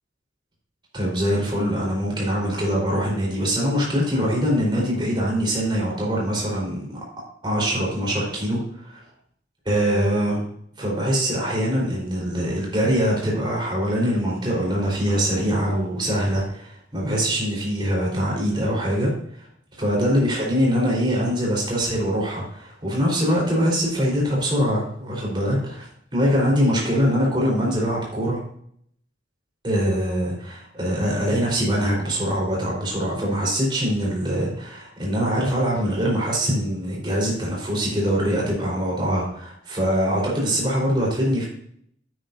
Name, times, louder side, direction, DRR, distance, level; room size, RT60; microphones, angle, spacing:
voice 1, 0.9-7.0 7.4-9.0 9.7-10.4 10.8-19.5 19.8-25.9 26.1-28.4 29.6-41.5, equal, 25° right, -3 dB, 4.1 m, -23 dB
9.5 x 9.0 x 2.7 m, 0.66 s
head